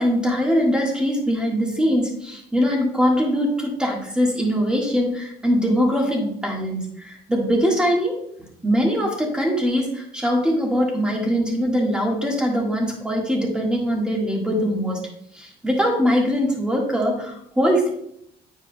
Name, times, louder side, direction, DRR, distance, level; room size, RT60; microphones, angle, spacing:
voice 1, 0.0-8.1 8.6-15.0 15.3-17.9, equal, 5° right, -1 dB, 1.7 m, -22 dB
9.3 x 4.8 x 2.3 m, 0.73 s
cardioid pair, 110°, 17 cm